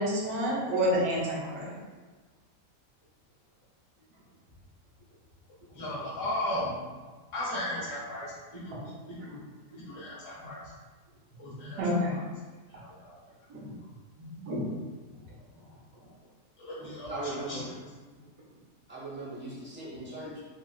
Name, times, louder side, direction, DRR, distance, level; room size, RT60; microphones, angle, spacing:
voice 1, 0.0-1.7 10.4-10.5 11.8-12.2 13.5-13.7 14.2-14.7, equal, 70° right, -6 dB, 1.4 m, -29 dB
voice 2, 5.7-6.7 7.3-8.8 9.1-9.4 9.9-10.7 11.4-12.2 12.7-13.1 16.6-17.7, left 1 dB, 85° left, -8 dB, 1.9 m, -36 dB
voice 3, 17.1-17.7 18.9-20.4, right 2 dB, 10° right, -8 dB, 1.0 m, -38 dB
5.7 x 2.4 x 2.3 m, 1.3 s
omnidirectional pair, 1.8 m